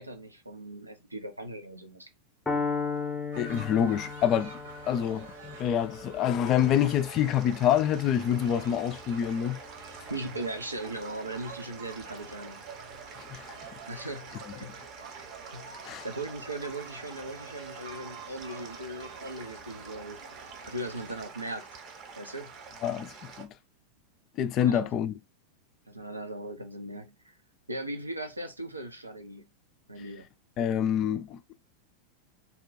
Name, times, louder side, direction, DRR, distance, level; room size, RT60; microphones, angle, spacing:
voice 1, 0.0-2.1 10.1-12.6 13.9-20.2 20.7-21.7 22.2-22.5 24.6-24.9 25.9-27.4 27.7-29.5 29.9-30.3, right 1 dB, 85° right, 0.6 m, -39 dB
Piano, 2.5-10.4, left 4 dB, 10° left, 0.7 m, -37 dB
sound 1, 3.3-21.3, right 4 dB, 60° right, 1.0 m, -48 dB
voice 2, 3.4-4.5 4.9-9.6 13.3-13.5 15.8-16.1 22.8-23.5 24.4-25.2 30.6-31.5, left 9 dB, 35° left, 0.3 m, -27 dB
sound 2, 6.4-23.4, right 5 dB, 35° right, 0.7 m, -47 dB
2.7 x 2.2 x 4.0 m
figure-of-eight pair, 90°, 0 cm